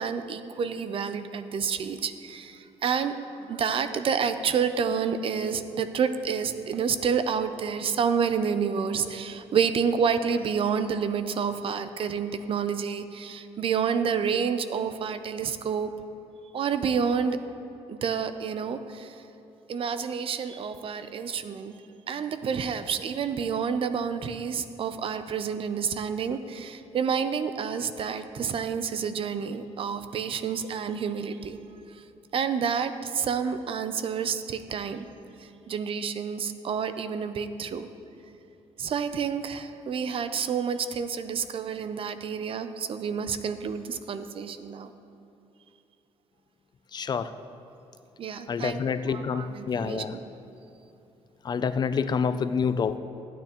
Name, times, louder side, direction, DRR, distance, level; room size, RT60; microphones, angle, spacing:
voice 1, 0.0-15.9 16.5-17.4 17.9-19.2 19.7-21.7 22.1-31.6 32.3-35.1 35.7-37.9 38.8-44.9 48.2-50.2, right 6 dB, 50° right, 11 dB, 0.6 m, -29 dB
voice 2, 46.9-47.3 48.5-50.1 51.4-53.0, left 6 dB, 40° left, 12 dB, 0.4 m, -27 dB
15.0 x 9.1 x 3.0 m, 2.9 s
cardioid pair, 100°, 11 cm